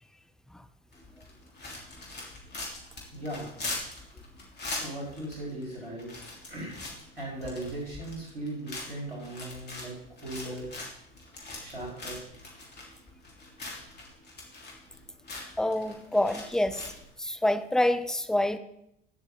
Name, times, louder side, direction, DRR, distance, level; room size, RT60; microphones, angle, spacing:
sound 1, 0.9-17.1, left 2 dB, 35° left, 3.5 m, -42 dB
voice 1, 3.1-3.5 4.8-6.1 6.5-6.8 7.1-9.9 10.2-10.7 11.6-12.2, right 1 dB, 90° right, -4 dB, 4.2 m, -38 dB
voice 2, 15.6-16.9 17.2-18.6, left 1 dB, ahead, 9 dB, 0.8 m, -27 dB
16.0 x 6.7 x 3.9 m, 0.80 s
figure-of-eight pair, 65°, 29 cm